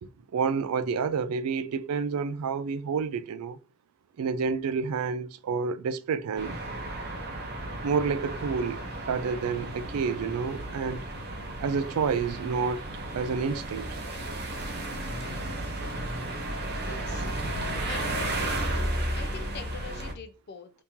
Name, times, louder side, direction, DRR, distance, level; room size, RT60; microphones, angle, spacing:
voice 1, 0.0-3.6 4.2-6.6 7.8-8.8 9.1-11.0 11.6-12.8 13.1-13.9 16.9-17.0, right 5 dB, 85° right, 0.3 m, -29 dB
sound 1, 6.4-20.1, right 1 dB, 45° right, 0.7 m, -33 dB
voice 2, 16.7-17.3 17.9-18.3 19.1-20.7, left 6 dB, 45° left, 0.5 m, -43 dB
2.9 x 2.7 x 3.5 m
head